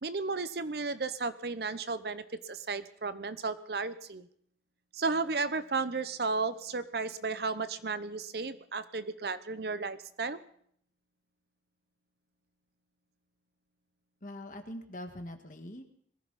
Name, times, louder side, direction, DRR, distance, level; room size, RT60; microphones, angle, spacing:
voice 1, 0.0-4.3 4.9-10.4, right 4 dB, 60° right, 13 dB, 0.8 m, -34 dB
voice 2, 14.2-15.8, left 1 dB, 45° left, 5 dB, 1.8 m, -43 dB
21.5 x 14.5 x 4.2 m, 0.64 s
head